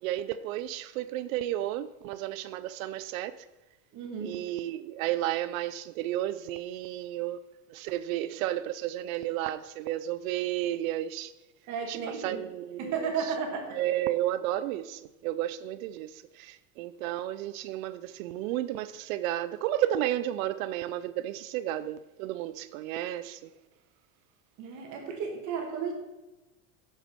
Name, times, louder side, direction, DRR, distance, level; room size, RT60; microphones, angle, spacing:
voice 1, 0.0-3.4 4.2-7.4 7.7-11.3 11.9-13.1 13.7-23.5, right 13 dB, 90° right, 0.6 m, -32 dB
voice 2, 3.9-4.4 11.7-12.4 12.8-13.8 24.6-25.9, right 6 dB, 45° right, 2.2 m, -33 dB
7.4 x 6.8 x 6.1 m
supercardioid pair, 150°, 39 cm